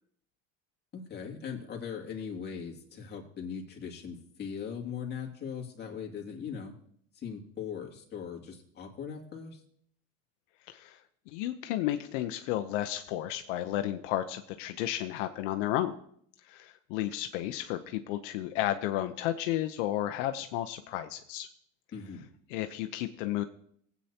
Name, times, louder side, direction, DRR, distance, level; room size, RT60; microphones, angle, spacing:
voice 1, 0.9-6.8 7.1-9.6 21.9-22.3, left 7 dB, 30° left, 0 dB, 2.3 m, -40 dB
voice 2, 10.7-11.0 11.3-15.9 16.4-21.5 22.5-23.4, left 13 dB, 80° left, 8 dB, 0.8 m, -32 dB
19.0 x 8.4 x 2.9 m, 0.66 s
supercardioid pair, 130°, 36 cm